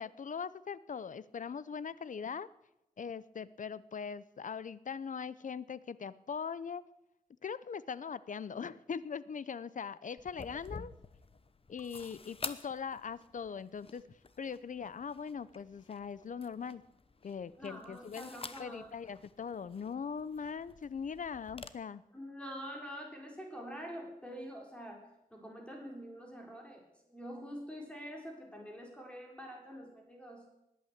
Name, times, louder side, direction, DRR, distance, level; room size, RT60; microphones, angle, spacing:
voice 1, 0.0-2.5 3.0-6.8 7.4-10.9 11.7-14.0 14.4-16.8 17.2-18.3 18.6-22.0, left 6 dB, 60° left, 17 dB, 0.6 m, -41 dB
sound 1, 10.2-21.7, left 4 dB, 40° left, 0.9 m, -50 dB
voice 2, 17.6-18.9 22.1-25.0 25.3-30.5, equal, 5° left, 0 dB, 4.2 m, -46 dB
20.0 x 8.7 x 8.1 m, 0.89 s
wide cardioid pair, 110°, 15 cm